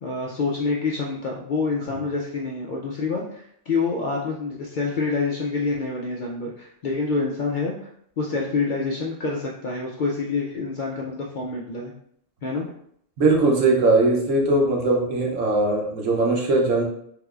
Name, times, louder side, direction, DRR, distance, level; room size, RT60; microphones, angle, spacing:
voice 1, 0.0-7.9 8.2-11.9 12.4-12.7 15.2-15.3, left 4 dB, 60° left, -2 dB, 0.5 m, -27 dB
voice 2, 13.2-16.8, right 2 dB, 85° right, -1 dB, 1.2 m, -20 dB
3.7 x 3.0 x 2.3 m, 0.67 s
omnidirectional pair, 1.3 m